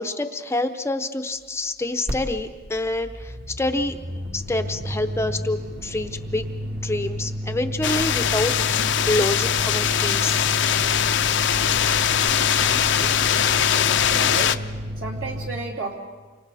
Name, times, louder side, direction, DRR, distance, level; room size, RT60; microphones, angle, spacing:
voice 1, 0.0-4.0 4.3-10.5, left 2 dB, 15° left, 7 dB, 0.7 m, -27 dB
sound 1, 2.1-2.2 2.4-15.5, equal, 50° right, 2.0 m, -31 dB
sound 2, 7.8-14.6, left 9 dB, 60° left, 0.6 m, -21 dB
voice 2, 12.8-14.5 15.0-16.0, right 3 dB, 70° right, 0 dB, 3.1 m, -34 dB
29.0 x 25.5 x 4.2 m, 1.4 s
head